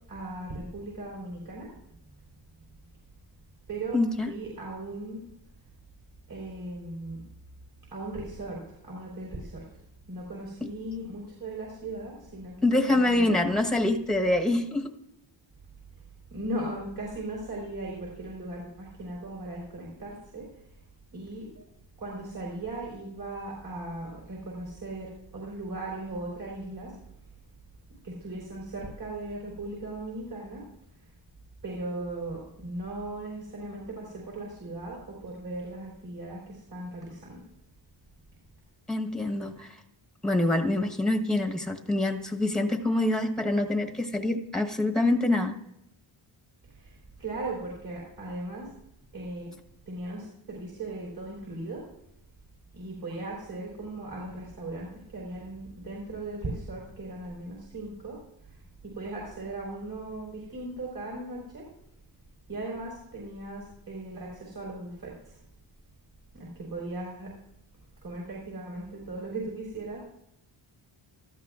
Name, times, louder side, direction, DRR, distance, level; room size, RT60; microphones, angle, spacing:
voice 1, 0.1-1.7 3.7-4.0 4.3-5.2 6.3-7.2 7.9-9.7 10.1-12.6 12.9-13.4 16.3-20.6 21.1-21.7 22.0-27.0 28.0-30.6 31.0-31.1 31.6-37.4 46.6-48.7 49.1-49.5 49.9-51.8 52.7-61.7 62.5-65.4 66.3-67.3 68.0-70.0, right 2 dB, 50° right, -4 dB, 4.3 m, -38 dB
voice 2, 3.9-4.3 12.6-14.9 38.9-39.8 40.2-45.5, left 2 dB, ahead, 5 dB, 1.1 m, -25 dB
18.0 x 13.5 x 2.5 m, 0.79 s
wide cardioid pair, 155°, 48 cm